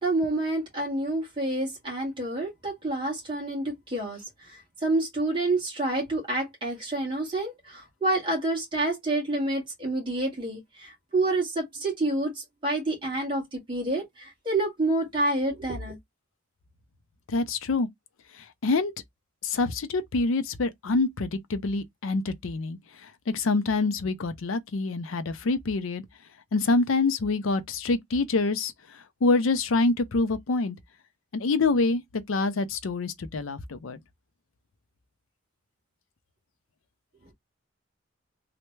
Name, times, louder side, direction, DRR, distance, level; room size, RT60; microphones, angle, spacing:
voice 1, 0.0-16.0, right 2 dB, 25° right, 1.6 m, -28 dB
voice 2, 17.3-17.9 18.4-18.9 19.4-26.0 26.5-30.8 31.3-34.0, left 3 dB, 80° left, 0.5 m, -26 dB
3.3 x 2.1 x 3.0 m
head